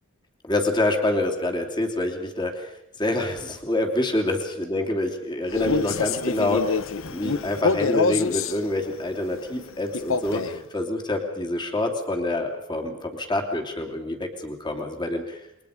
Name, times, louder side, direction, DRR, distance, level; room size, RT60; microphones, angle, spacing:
voice 1, 0.4-15.5, left 1 dB, 20° left, 3 dB, 2.9 m, -27 dB
Male speech man speaking, 5.5-8.6 9.9-10.6, left 4 dB, 65° left, 0.9 m, -26 dB
29.5 x 22.5 x 5.1 m, 0.80 s
head